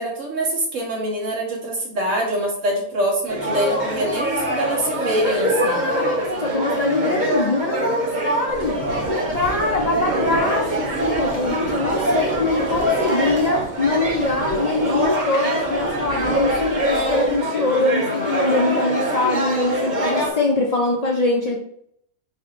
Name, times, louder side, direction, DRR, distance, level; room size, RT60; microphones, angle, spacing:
voice 1, 0.0-5.8, right 1 dB, 90° right, -1 dB, 1.5 m, -24 dB
sound 1, 3.3-20.3, right 1 dB, 40° right, 1.1 m, -24 dB
voice 2, 5.2-8.8 9.3-21.6, left 2 dB, 50° left, -1 dB, 0.5 m, -23 dB
sound 2, 8.5-17.3, right 3 dB, 70° right, 1.1 m, -32 dB
4.4 x 4.0 x 2.4 m, 0.71 s
omnidirectional pair, 1.3 m